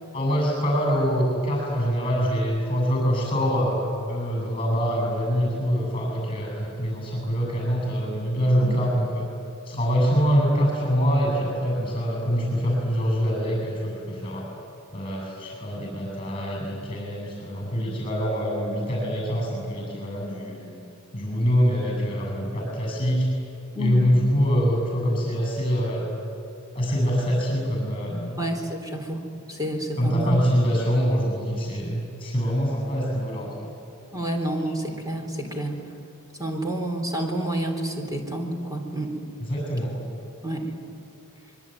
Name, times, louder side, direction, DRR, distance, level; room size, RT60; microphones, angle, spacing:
voice 1, 0.1-3.8 4.1-9.2 9.7-14.5 14.9-20.7 21.1-23.3 23.8-26.1 26.7-28.4 30.0-33.5 39.5-39.9, equal, 25° left, 0 dB, 7.8 m, -24 dB
voice 2, 23.7-24.1 28.4-29.2 29.5-30.4 34.1-35.8 36.4-39.2 40.4-40.7, right 1 dB, 15° right, 2 dB, 4.0 m, -29 dB
26.0 x 23.0 x 9.4 m, 2.6 s
head